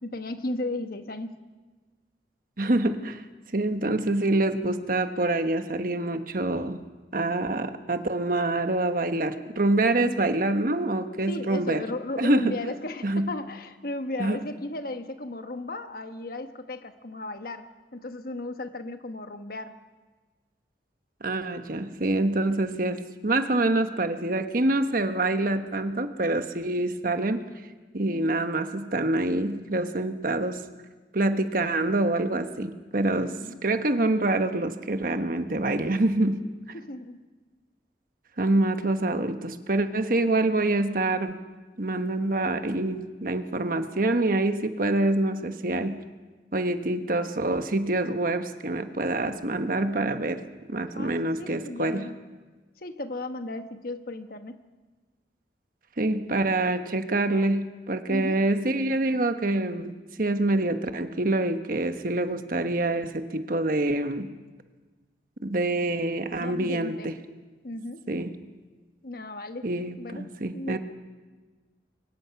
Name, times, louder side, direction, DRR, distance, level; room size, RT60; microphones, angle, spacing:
voice 1, 0.0-1.4 10.0-10.2 11.3-19.8 28.1-28.4 33.3-33.6 36.7-37.2 50.9-51.1 51.4-52.2 52.8-54.6 58.1-58.5 66.4-67.1 67.6-68.1 69.0-69.7 70.0-70.8, left 2 dB, 55° left, 8 dB, 1.2 m, -35 dB
voice 2, 2.6-3.2 3.5-6.8 7.1-11.8 12.2-12.5 13.0-13.3 14.2-14.4 21.2-27.4 27.9-30.6 31.1-36.4 38.4-41.4 41.8-46.0 46.5-50.4 50.7-52.0 56.0-64.3 65.4-67.1 68.1-68.3 69.6-70.8, right 2 dB, 50° right, 8 dB, 1.2 m, -26 dB
23.0 x 21.0 x 5.9 m, 1.3 s
head